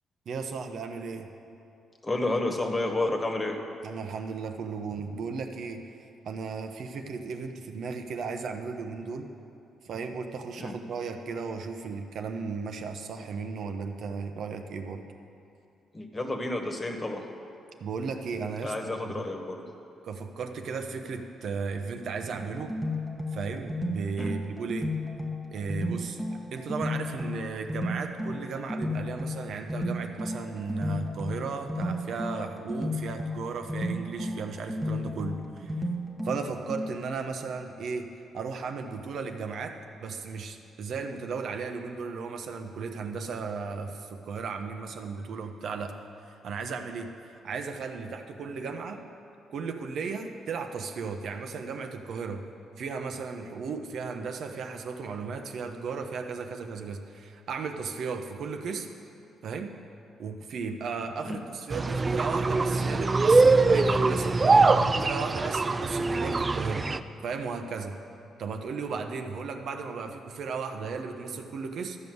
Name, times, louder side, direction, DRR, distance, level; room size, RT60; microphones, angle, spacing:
voice 1, 0.3-1.3 3.8-5.8 6.2-9.3 9.8-15.0 17.8-19.2 20.0-22.7 23.3-24.9 25.5-35.8 36.2-38.1 38.3-45.9 46.4-49.0 49.5-52.4 52.8-58.9 59.4-59.7 60.2-66.9 67.2-68.0 68.4-72.0, right 5 dB, 65° right, 6 dB, 0.9 m, -35 dB
voice 2, 2.0-3.6 10.6-10.7 15.9-17.2 18.6-19.6 24.2-24.3 61.2-61.4, left 2 dB, 25° left, 3 dB, 1.4 m, -30 dB
sound 1, 22.3-37.2, left 1 dB, 10° right, 1.1 m, -34 dB
sound 2, 61.7-67.0, right 3 dB, 30° right, 0.4 m, -23 dB
12.5 x 5.5 x 7.8 m, 2.8 s
cardioid pair, 90°, 0 cm